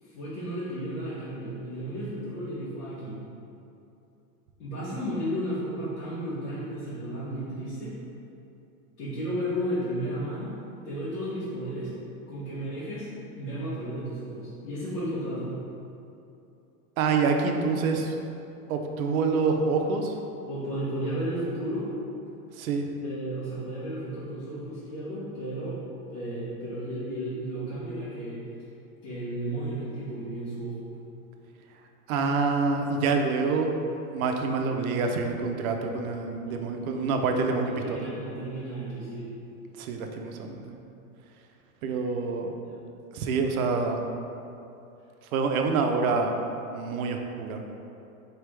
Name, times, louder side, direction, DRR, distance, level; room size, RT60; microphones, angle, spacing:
voice 1, 0.0-3.2 4.6-8.0 9.0-10.6 10.8-11.9 12.3-13.1 13.3-15.6 20.5-21.9 23.0-25.8 26.1-28.4 29.0-31.0 36.5-39.3 42.6-42.7, right 1 dB, 85° left, -12 dB, 1.5 m, -33 dB
voice 2, 17.0-18.1 18.7-20.1 22.6-22.8 32.1-33.7 34.1-38.1 39.8-40.7 41.8-42.5 43.1-44.1 45.3-46.3 46.7-47.6, right 4 dB, 70° right, 4 dB, 0.6 m, -26 dB
4.1 x 3.4 x 3.2 m, 2.8 s
supercardioid pair, 160°, 44 cm